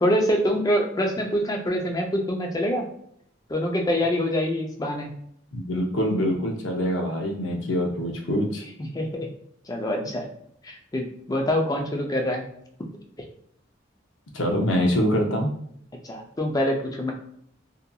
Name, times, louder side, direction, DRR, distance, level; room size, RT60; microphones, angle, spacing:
voice 1, 0.0-2.9 3.5-5.1 8.8-9.3 9.7-10.3 10.6-12.4 16.0-17.1, equal, 20° left, 2 dB, 0.4 m, -25 dB
voice 2, 5.5-8.6 14.3-15.5, equal, 90° left, 2 dB, 0.6 m, -24 dB
2.8 x 2.5 x 2.2 m, 0.70 s
head